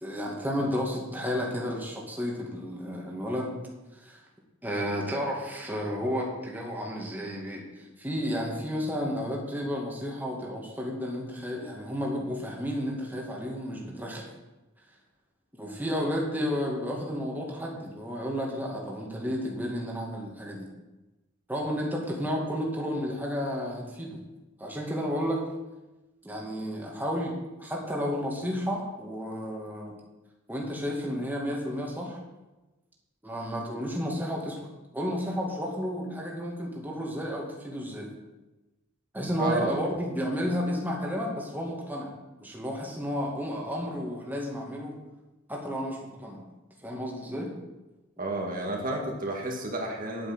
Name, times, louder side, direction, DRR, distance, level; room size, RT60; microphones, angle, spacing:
voice 1, 0.0-3.5 4.0-4.2 4.6-14.3 15.5-20.7 21.5-24.2 24.6-25.4 26.2-29.9 30.5-32.2 33.2-34.6 34.9-38.1 39.1-45.0 45.5-46.5 46.8-47.5, equal, 10° right, -2 dB, 2.1 m, -32 dB
voice 2, 39.4-39.8 48.2-50.3, right 2 dB, 45° right, 0 dB, 1.9 m, -31 dB
10.5 x 8.7 x 6.2 m, 1.1 s
head